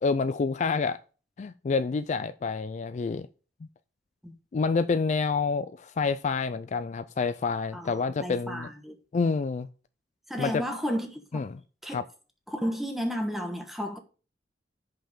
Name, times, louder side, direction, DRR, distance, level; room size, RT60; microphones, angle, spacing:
voice 1, 0.0-1.0 1.4-3.3 4.5-8.7 9.1-9.7 10.4-10.6 11.3-11.6 11.9-12.0, left 4 dB, 40° left, 0.3 m, -28 dB
voice 2, 7.7-8.9 10.3-11.4 11.8-12.0 12.5-14.0, equal, ahead, 1.3 m, -32 dB
5.6 x 5.5 x 6.6 m
head